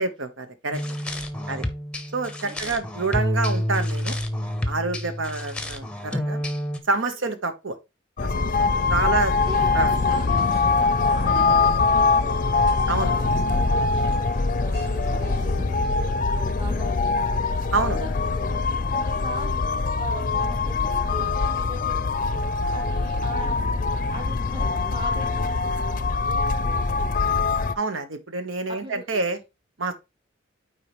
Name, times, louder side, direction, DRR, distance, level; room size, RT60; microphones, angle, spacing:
voice 1, 0.0-0.8 1.5-1.6 2.1-4.1 4.7-6.4 6.9-7.8 8.9-9.3 9.7-9.9 12.9-13.1 17.7-18.0 27.8-29.4 29.8-29.9, right 3 dB, 85° right, 1.2 m, -27 dB
sound 1, 0.7-6.8, left 1 dB, 5° left, 0.7 m, -29 dB
voice 2, 0.8-1.9 2.4-2.8 4.7-5.0 8.4-8.9 9.3-17.7 17.9-23.6 24.1-25.7 26.3-27.4 28.7-29.0 29.8-29.9, right 1 dB, 25° right, 1.0 m, -41 dB
sound 2, 8.2-27.7, left 4 dB, 45° left, 0.5 m, -23 dB
sound 3, 8.7-16.2, equal, 60° right, 4.2 m, -43 dB
8.4 x 4.7 x 3.1 m
head